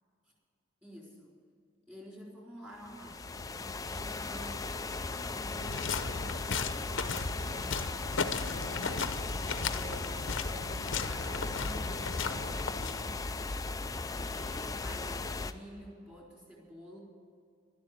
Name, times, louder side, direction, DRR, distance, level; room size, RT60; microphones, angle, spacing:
voice 1, 0.8-1.3 1.9-9.0 9.4-13.2 14.3-17.0, equal, 10° right, -3 dB, 3.9 m, -50 dB
sound 1, 2.8-15.5, left 3 dB, 15° left, 0.4 m, -37 dB
sound 2, 5.6-13.3, left 5 dB, 60° left, 0.8 m, -36 dB
12.0 x 11.5 x 9.5 m, 2.4 s
head